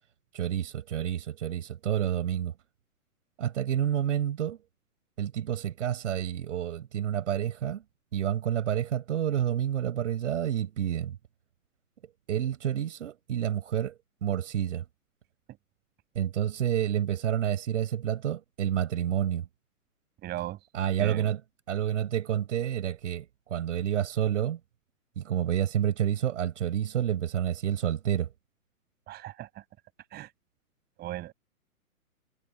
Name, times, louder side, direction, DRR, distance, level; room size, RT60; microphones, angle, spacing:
voice 1, 0.3-2.5 3.4-4.6 5.2-7.8 8.1-11.2 12.3-14.8 16.2-19.5 20.7-21.4 21.7-24.6 25.2-28.3, right 10 dB, 55° right, 5.6 m, -29 dB
voice 2, 20.2-20.6 21.0-21.3 29.1-29.6 30.1-30.3 31.0-31.3, right 15 dB, 20° right, 6.8 m, -37 dB
figure-of-eight pair, 130°, 45 cm